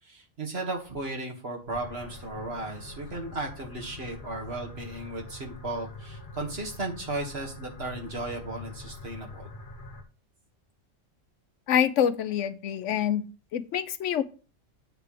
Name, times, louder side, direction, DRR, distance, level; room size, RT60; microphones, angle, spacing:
voice 1, 0.0-9.5, right 2 dB, 55° right, 1 dB, 2.0 m, -35 dB
sound 1, 1.7-10.0, left 2 dB, 45° left, 1.1 m, -44 dB
voice 2, 11.7-13.2 13.5-14.2, left 9 dB, 75° left, 14 dB, 0.9 m, -26 dB
8.9 x 3.4 x 6.5 m, 0.35 s
omnidirectional pair, 1.3 m